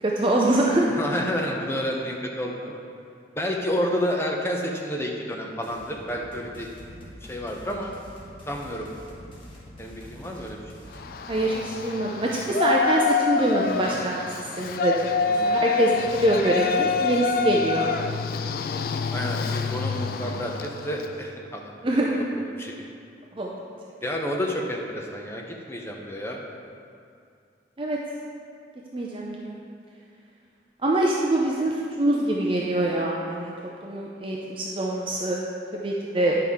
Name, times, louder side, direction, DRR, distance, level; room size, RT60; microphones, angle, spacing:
voice 1, 0.0-0.9 11.3-15.1 15.4-17.9 21.8-22.2 23.4-23.6 27.8-28.0 28.9-29.6 30.8-33.5 33.8-35.4 35.8-36.4, right 1 dB, 30° right, -2 dB, 0.5 m, -24 dB
voice 2, 0.9-2.8 3.4-6.7 7.3-7.9 8.5-8.9 9.8-10.6 15.2-15.6 19.1-21.8 22.1-22.9 24.0-26.4, equal, 15° left, -1 dB, 0.7 m, -30 dB
sound 1, 5.6-11.2, equal, 30° left, 1.2 m, -45 dB
Yell, 10.9-21.1, left 5 dB, 50° left, 0.3 m, -27 dB
9.5 x 5.6 x 3.6 m, 2.4 s
head